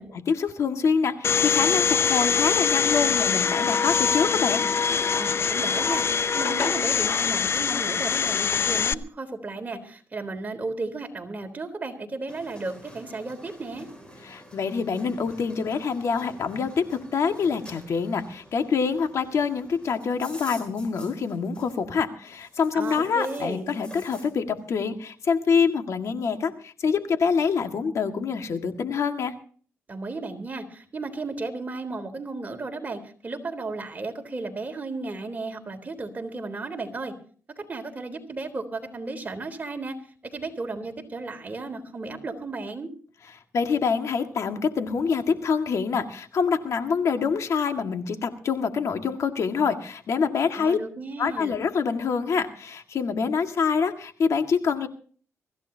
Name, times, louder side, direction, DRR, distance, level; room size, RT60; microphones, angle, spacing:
voice 1, 0.1-4.6 14.2-29.3 43.5-50.8 51.2-54.9, left 5 dB, 65° left, 6 dB, 1.9 m, -26 dB
Domestic sounds home sounds, 1.2-8.9, left 6 dB, 50° left, 0.7 m, -23 dB
voice 2, 5.2-6.1 6.3-13.9 22.7-23.8 29.9-37.1 37.6-40.0 40.2-42.9 50.5-51.6, right 3 dB, 30° right, 5 dB, 3.6 m, -34 dB
sound 1, 12.3-21.9 22.2-24.3, equal, 20° left, 8.0 m, -48 dB
24.0 x 14.5 x 2.8 m, 0.43 s
cardioid pair, 90°, 5 cm